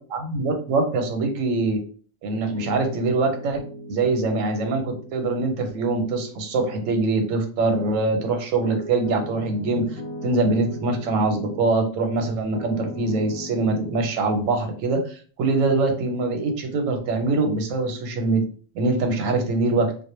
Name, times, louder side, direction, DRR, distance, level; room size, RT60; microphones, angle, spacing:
voice 1, 0.1-1.8 2.2-18.4 18.7-19.9, right 3 dB, 90° right, 5 dB, 1.0 m, -23 dB
Piano, 2.3-11.7 12.1-14.1, left 1 dB, 65° left, 0.7 m, -39 dB
2.2 x 2.1 x 3.0 m, 0.42 s
omnidirectional pair, 1.3 m